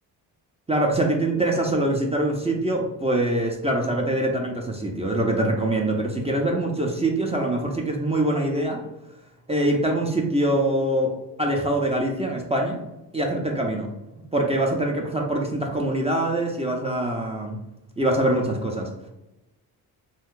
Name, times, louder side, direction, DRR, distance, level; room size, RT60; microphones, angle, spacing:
voice 1, 0.7-8.8 9.5-12.8 13.1-13.9 14.3-17.6 18.0-18.9, right 1 dB, 15° right, 0 dB, 0.4 m, -24 dB
2.6 x 2.2 x 3.7 m, 0.94 s
cardioid pair, 80°, 43 cm